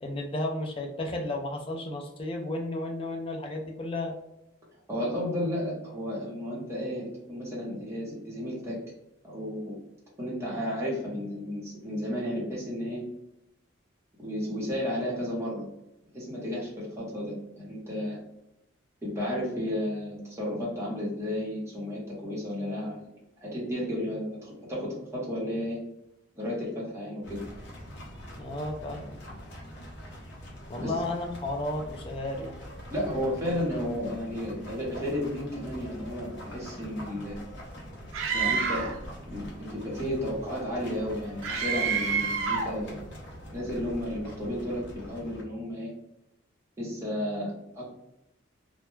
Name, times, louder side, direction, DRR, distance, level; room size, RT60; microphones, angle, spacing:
voice 1, 0.0-4.1 28.4-29.2 30.7-32.5, left 1 dB, 25° left, 2 dB, 0.4 m, -33 dB
voice 2, 4.9-8.8 9.2-9.7 10.2-13.1 14.2-15.7 16.1-18.2 19.0-23.1 23.4-25.8 26.3-27.4 30.8-31.0 32.9-37.4 38.3-39.0 39.3-43.0 43.5-45.9 46.8-47.9, equal, 15° right, -5 dB, 0.7 m, -33 dB
sound 1, 27.2-45.4, equal, 55° left, 0.7 m, -44 dB
Screaming, 38.1-39.0 41.4-42.8, right 5 dB, 80° right, 0.4 m, -28 dB
2.1 x 2.1 x 3.0 m, 0.87 s
head